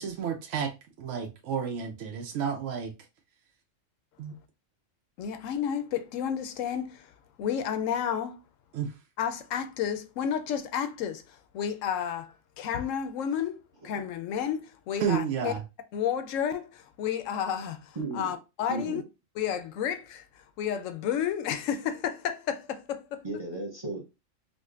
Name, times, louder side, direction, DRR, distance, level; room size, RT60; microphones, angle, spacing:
voice 1, 0.0-2.9 4.2-4.3 8.7-8.9 15.0-15.6, right 7 dB, 75° right, 0.9 m, -31 dB
voice 2, 5.2-8.4 9.2-15.5 15.9-19.0 19.4-23.2, left 8 dB, 80° left, 0.9 m, -31 dB
voice 3, 18.0-18.4 18.7-19.0 23.2-24.0, right 2 dB, 25° right, 0.6 m, -35 dB
4.9 x 2.1 x 2.4 m
omnidirectional pair, 1.3 m